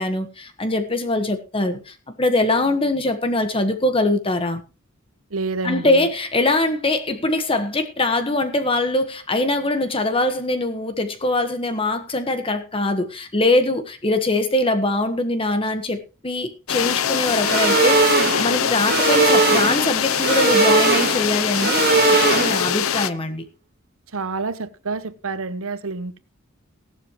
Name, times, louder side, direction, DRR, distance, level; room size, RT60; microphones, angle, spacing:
voice 1, 0.0-4.6 5.6-23.4, left 2 dB, 25° left, 1.4 m, -22 dB
voice 2, 5.3-6.1 24.1-26.2, right 3 dB, 85° right, 1.0 m, -28 dB
sound 1, 16.7-23.1, left 8 dB, 85° left, 0.7 m, -23 dB
sound 2, 17.4-22.8, right 4 dB, 50° right, 2.1 m, -19 dB
17.0 x 12.0 x 3.1 m
head